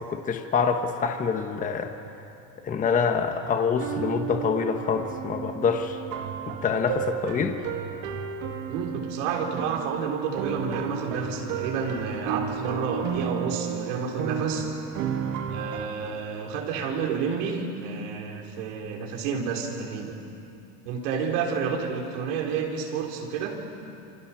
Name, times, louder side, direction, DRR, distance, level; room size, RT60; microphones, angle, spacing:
voice 1, 0.0-1.9 2.6-6.0 6.5-7.6, left 6 dB, 20° left, 5 dB, 1.2 m, -26 dB
sound 1, 3.7-15.9, right 8 dB, 50° right, 2.0 m, -33 dB
voice 2, 8.7-14.8 15.5-20.2 20.8-23.6, right 6 dB, 90° right, 0 dB, 4.2 m, -30 dB
28.0 x 27.5 x 6.0 m, 2.8 s
cardioid pair, 155°, 37 cm